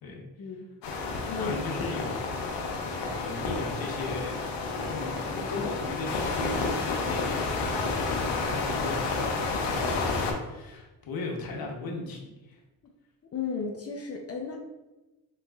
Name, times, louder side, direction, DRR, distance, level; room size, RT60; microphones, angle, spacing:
sound 1, 0.8-10.3, left 3 dB, 80° left, 0.7 m, -30 dB
voice 1, 1.4-2.4 2.9-4.4 4.7-12.6, left 2 dB, 55° left, 1 dB, 1.0 m, -37 dB
voice 2, 13.3-14.6, left 5 dB, 35° left, 1 dB, 0.5 m, -34 dB
3.5 x 3.0 x 2.3 m, 1.1 s
supercardioid pair, 60°, 41 cm